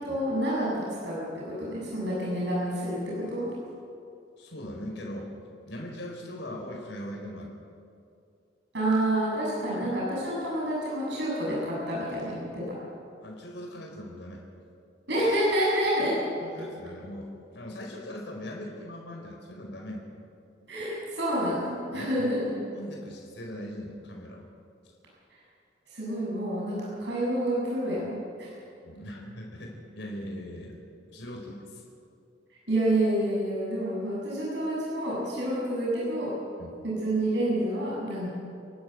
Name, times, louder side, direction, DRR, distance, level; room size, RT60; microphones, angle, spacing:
voice 1, 0.0-3.0 3.3-3.5 8.7-12.6 15.1-16.1 20.7-22.4 25.3-25.4 25.9-28.5 32.7-36.3 36.8-38.3, right 1 dB, 70° right, -6 dB, 7.4 m, -28 dB
voice 2, 4.4-5.3 5.7-7.6 9.7-10.0 13.2-14.4 16.4-20.0 21.9-24.5 28.8-30.8 31.1-31.8 36.6-36.8, left 1 dB, 75° left, -1 dB, 4.7 m, -40 dB
30.0 x 12.0 x 7.9 m, 2.5 s
head